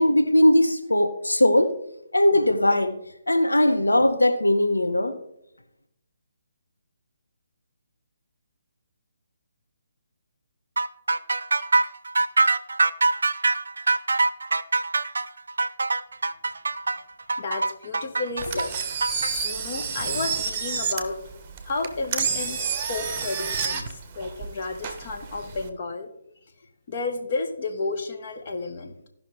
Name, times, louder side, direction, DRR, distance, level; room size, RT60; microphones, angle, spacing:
voice 1, 0.0-1.7 2.1-2.9 3.3-5.1, left 1 dB, 90° left, 5 dB, 1.0 m, -19 dB
sound 1, 10.8-19.3, right 3 dB, 70° right, 0.5 m, -23 dB
voice 2, 17.4-18.9 19.3-21.2 21.6-22.6 22.9-26.1 26.9-29.1, left 3 dB, 45° left, 4 dB, 1.4 m, -32 dB
Engine, 18.4-25.7, right 6 dB, 25° right, 1.0 m, -30 dB
15.5 x 5.8 x 3.5 m, 0.79 s
figure-of-eight pair, 145°, 0 cm